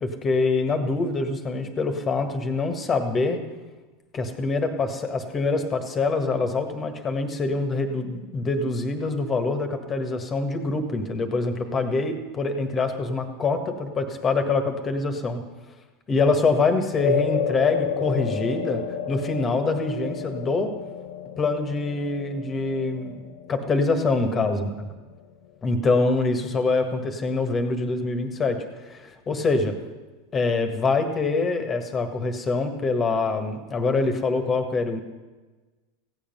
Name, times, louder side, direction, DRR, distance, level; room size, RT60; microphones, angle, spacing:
voice 1, 0.0-3.4 4.1-15.4 16.1-18.8 19.1-20.7 21.4-23.2 23.5-24.9 25.6-29.7 30.3-35.0, left 3 dB, 25° left, 6 dB, 1.5 m, -25 dB
sound 1, 17.0-25.5, left 8 dB, 65° left, 0.8 m, -31 dB
15.5 x 8.9 x 5.5 m, 1.3 s
hypercardioid pair, 85°, 0 cm